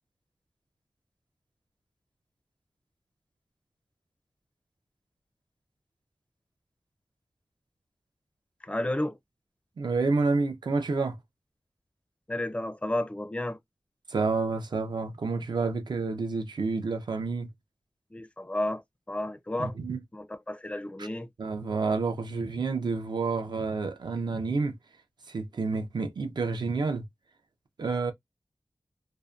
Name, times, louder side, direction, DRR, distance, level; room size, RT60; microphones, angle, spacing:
voice 1, 8.6-9.2 12.3-13.6 18.1-18.8 19.1-19.7 20.1-21.3, left 1 dB, 15° left, 0.4 m, -32 dB
voice 2, 9.8-11.2 14.1-17.5 19.6-20.0 21.0-21.1 21.4-24.7 25.3-27.0 27.8-28.1, right 4 dB, 70° right, 0.5 m, -29 dB
2.6 x 2.1 x 2.3 m
wide cardioid pair, 90°, 8 cm